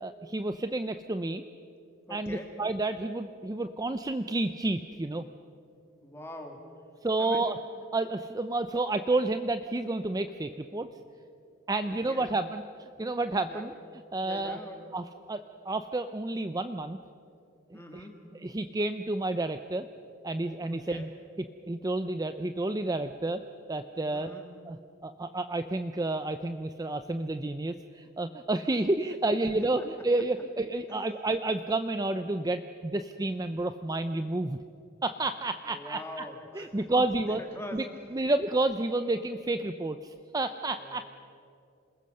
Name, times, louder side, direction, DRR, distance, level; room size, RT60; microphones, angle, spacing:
voice 1, 0.0-1.4 2.1-5.3 7.0-7.6 7.9-10.9 11.7-13.7 14.1-14.6 14.9-17.0 17.7-18.1 18.4-19.9 20.2-21.1 21.7-23.4 23.7-24.3 24.7-24.8 25.0-34.6 35.0-36.2 36.6-37.4 37.7-37.8 38.1-41.0, right 2 dB, 20° right, 9 dB, 0.5 m, -30 dB
voice 2, 2.1-2.5 6.0-6.6 7.2-7.5 11.8-12.3 13.5-13.7 14.2-14.8 17.7-18.2 20.7-21.1 24.1-24.5 30.9-31.0 35.6-36.9 37.3-37.9 40.7-41.0, left 1 dB, 10° left, 2 dB, 2.6 m, -44 dB
27.5 x 20.5 x 6.5 m, 2.6 s
head